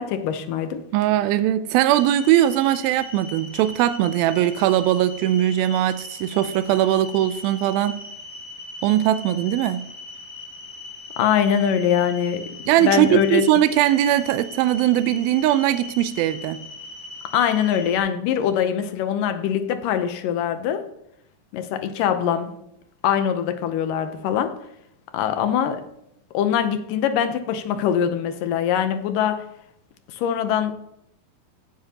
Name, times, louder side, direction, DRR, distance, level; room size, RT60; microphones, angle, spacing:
voice 1, 0.0-0.8 11.2-12.5 12.8-13.5 17.3-20.9 21.5-22.5 23.0-24.6 25.1-25.8 26.3-29.5 30.1-30.7, left 8 dB, 75° left, 2.2 m, -23 dB
voice 2, 0.9-8.0 8.8-9.8 12.7-16.6, right 12 dB, 85° right, 2.3 m, -20 dB
sound 1, 1.9-18.0, left 2 dB, 55° left, 2.2 m, -39 dB
16.0 x 8.7 x 2.9 m
omnidirectional pair, 4.3 m